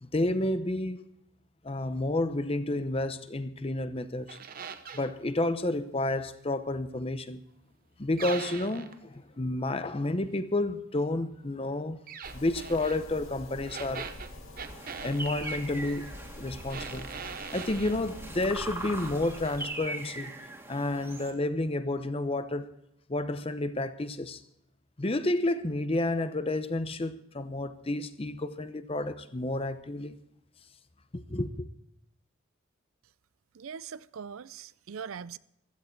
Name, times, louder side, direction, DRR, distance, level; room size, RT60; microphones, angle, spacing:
voice 1, 0.0-1.0 1.6-4.4 4.9-7.4 8.0-12.0 12.3-14.1 15.0-16.1 16.4-17.1 17.5-20.3 20.7-22.7 23.1-24.4 25.0-30.1 31.1-31.7, left 2 dB, 25° left, 0.7 m, -30 dB
sound 1, 4.3-5.1 8.2-9.0 12.1-13.0 13.6-15.6 16.7-18.0 18.5-19.1 19.4-19.7, right 6 dB, 45° right, 0.8 m, -42 dB
sound 2, 12.2-19.6, left 1 dB, 70° left, 7.1 m, -46 dB
sound 3, 14.7-21.3, right 2 dB, 10° right, 1.8 m, -41 dB
voice 2, 33.5-35.4, right 6 dB, 80° right, 0.5 m, -41 dB
15.5 x 13.5 x 4.5 m
head